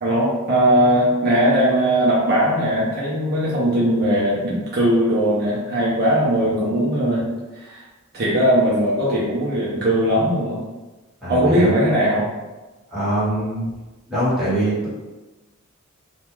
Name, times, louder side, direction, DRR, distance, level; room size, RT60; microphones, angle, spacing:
voice 1, 0.0-7.8 8.1-10.6 11.3-12.3, right 1 dB, 45° right, -6 dB, 0.6 m, -19 dB
voice 2, 11.2-11.7 12.9-13.7 14.1-14.9, right 1 dB, ahead, -12 dB, 1.2 m, -23 dB
2.3 x 2.3 x 3.0 m, 1.2 s
head